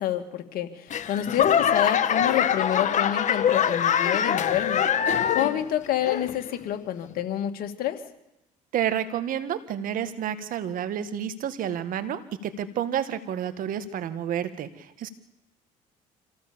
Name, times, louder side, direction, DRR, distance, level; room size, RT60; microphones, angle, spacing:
voice 1, 0.0-4.8 5.3-8.0, left 11 dB, 70° left, 6 dB, 2.4 m, -28 dB
Laughter / Clapping / Crowd, 0.9-5.7 6.0-6.5 7.1-7.2, left 8 dB, 50° left, 1.5 m, -24 dB
voice 2, 8.7-15.1, right 9 dB, 65° right, 12 dB, 1.8 m, -30 dB
26.5 x 16.0 x 7.2 m, 0.88 s
supercardioid pair, 85°, 16 cm